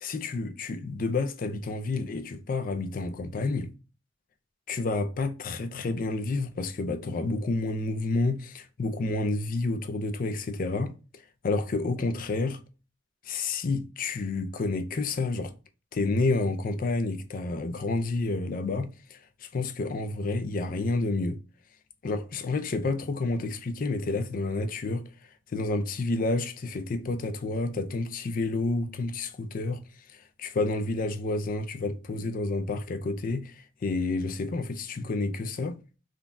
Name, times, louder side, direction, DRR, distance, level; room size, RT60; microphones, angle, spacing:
voice 1, 0.0-3.7 4.7-10.9 11.4-12.6 13.2-15.5 15.9-21.4 22.0-25.0 25.5-29.8 30.1-35.8, left 3 dB, 50° left, 0.4 m, -29 dB
3.7 x 2.3 x 2.5 m
head